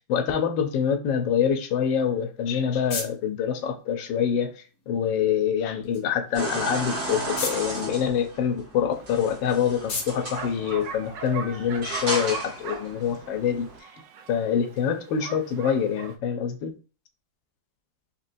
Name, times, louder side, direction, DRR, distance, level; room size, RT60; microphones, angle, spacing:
voice 1, 0.1-13.7 14.3-16.8, left 8 dB, 80° left, 1.3 m, -25 dB
sound 1, 2.1-11.5, left 4 dB, 50° left, 1.0 m, -40 dB
sound 2, 6.3-13.8, right 1 dB, 40° right, 1.4 m, -35 dB
Bark, 9.0-16.1, right 6 dB, 75° right, 1.2 m, -40 dB
4.2 x 3.1 x 2.6 m
omnidirectional pair, 2.1 m